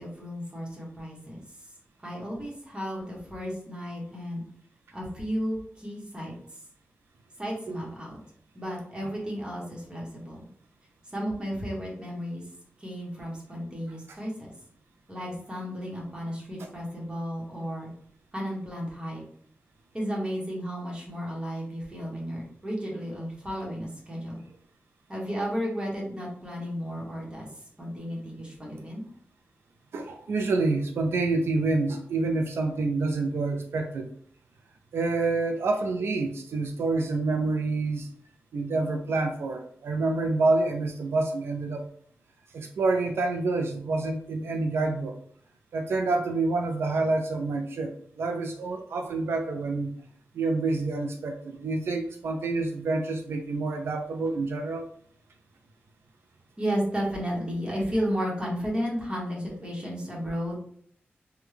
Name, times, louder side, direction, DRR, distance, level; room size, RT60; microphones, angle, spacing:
voice 1, 0.0-1.4 2.0-4.4 4.9-6.6 7.4-8.2 8.5-10.4 11.1-12.4 12.8-14.5 15.1-17.9 18.3-19.2 19.9-24.4 25.1-27.5 27.8-29.0 56.6-60.6, equal, 25° right, -3 dB, 1.1 m, -33 dB
voice 2, 29.9-34.1 34.9-38.1 38.5-41.9 42.5-45.1 45.7-50.0 50.3-54.9, right 3 dB, 85° right, 4 dB, 0.3 m, -27 dB
3.4 x 2.2 x 3.2 m, 0.63 s
wide cardioid pair, 130°, 4 cm